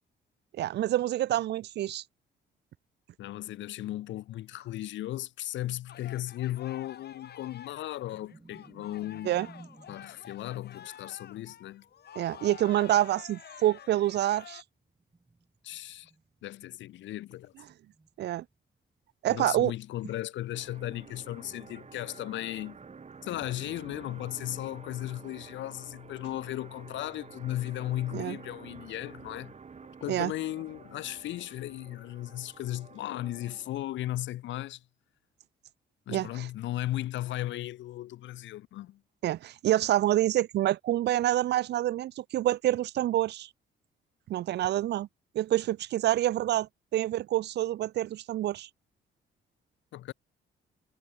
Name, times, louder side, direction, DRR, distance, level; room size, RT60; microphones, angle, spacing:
voice 1, 0.6-2.0 9.2-9.5 12.2-14.6 18.2-18.4 19.2-19.7 28.1-28.4 30.1-30.3 36.1-36.5 39.2-43.5 44.3-45.1 45.4-48.7, right 13 dB, 65° right, 0.4 m, -27 dB
voice 2, 3.2-9.3 9.9-11.8 15.6-16.1 16.4-17.5 19.3-22.8 23.2-29.5 30.0-34.8 36.1-39.0 49.9-50.1, left 14 dB, 75° left, 0.7 m, -36 dB
sound 1, 5.9-14.6, left 9 dB, 60° left, 3.0 m, -49 dB
sound 2, 8.1-13.4 14.6-18.8 19.1-19.2 19.6-23.3, right 3 dB, 20° right, 4.0 m, -57 dB
sound 3, 20.5-33.9, right 5 dB, 35° right, 4.4 m, -50 dB
cardioid pair, 100°, 19 cm